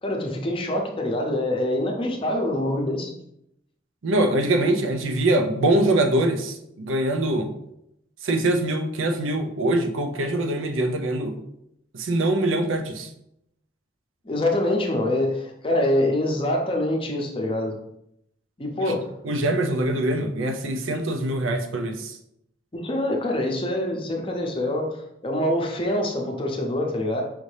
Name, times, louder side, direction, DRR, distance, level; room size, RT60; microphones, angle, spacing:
voice 1, 0.0-3.1 14.2-17.8 18.6-19.1 22.7-25.0 25.2-27.2, left 1 dB, 30° left, 1 dB, 0.6 m, -25 dB
voice 2, 4.0-7.5 8.2-11.4 11.9-13.1 18.8-18.9 19.2-22.2, right 1 dB, 90° right, 5 dB, 0.5 m, -23 dB
4.9 x 2.7 x 3.3 m, 0.80 s
head